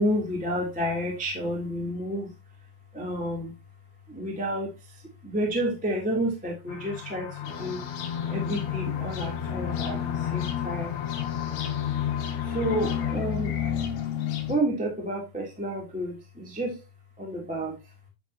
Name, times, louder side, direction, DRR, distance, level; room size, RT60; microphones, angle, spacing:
voice 1, 0.0-2.3 2.9-3.5 4.1-7.8 8.3-10.9 12.4-13.6 14.5-16.8 17.2-17.8, right 1 dB, 5° right, -2 dB, 1.9 m, -30 dB
sound 1, 6.7-13.2, left 10 dB, 85° left, 1.5 m, -34 dB
sound 2, 7.5-14.6, left 8 dB, 65° left, 3.3 m, -31 dB
11.5 x 6.4 x 2.9 m, 0.23 s
omnidirectional pair, 5.4 m